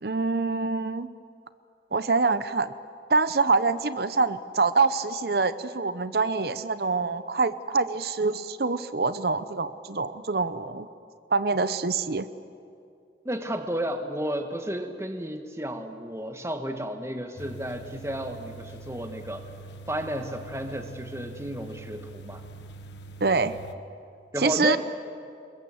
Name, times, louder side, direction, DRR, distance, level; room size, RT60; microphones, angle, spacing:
voice 1, 0.0-1.1 1.9-2.7 3.1-10.9 11.3-12.3 23.2-23.6 24.4-24.8, right 4 dB, 60° right, 13 dB, 0.7 m, -25 dB
voice 2, 13.2-19.4 19.9-22.4 24.3-24.8, equal, 15° right, 6 dB, 1.5 m, -32 dB
sound 1, 17.4-23.7, right 2 dB, 80° left, 1.3 m, -44 dB
29.5 x 21.0 x 7.8 m, 2.5 s
head